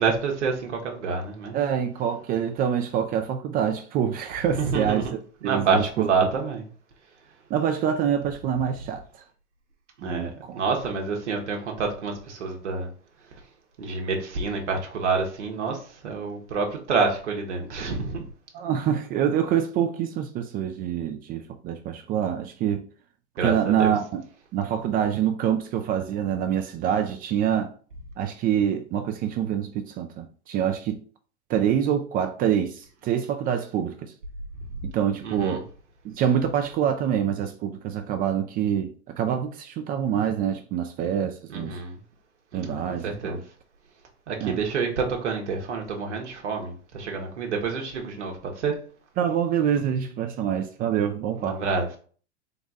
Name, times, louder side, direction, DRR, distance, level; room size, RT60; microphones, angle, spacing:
voice 1, 0.0-1.6 4.5-5.1 5.4-6.7 10.0-12.9 13.8-18.2 23.4-23.9 35.2-35.6 41.5-42.0 42.5-42.7 43.0-43.4 44.3-48.7 51.4-51.9, right 4 dB, 80° right, 1.0 m, -27 dB
voice 2, 1.5-5.1 5.4-6.1 7.5-9.0 10.0-10.6 18.5-22.8 23.4-24.2 24.5-27.7 28.2-31.0 31.5-34.1 34.8-35.7 36.0-41.8 42.5-43.4 44.4-44.6 49.2-51.6, right 9 dB, 25° right, 0.3 m, -26 dB
3.9 x 2.3 x 3.9 m
hypercardioid pair, 95°, 34 cm